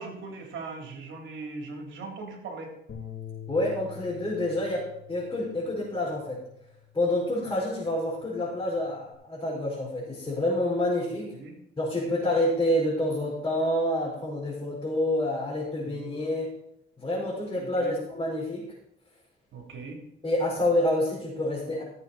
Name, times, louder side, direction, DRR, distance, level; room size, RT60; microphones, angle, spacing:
voice 1, 0.0-2.7 11.3-11.6 12.0-12.1 15.8-16.1 17.6-17.9 19.5-20.0, right 3 dB, 75° right, 1 dB, 3.5 m, -40 dB
sound 1, 2.9-9.1, left 9 dB, 60° left, 3.4 m, -47 dB
voice 2, 3.5-6.4 6.9-11.3 11.8-16.5 17.0-18.6 20.2-21.8, left 1 dB, 25° left, -7 dB, 5.1 m, -28 dB
16.0 x 8.0 x 4.3 m, 0.76 s
cardioid pair, 90°, 20 cm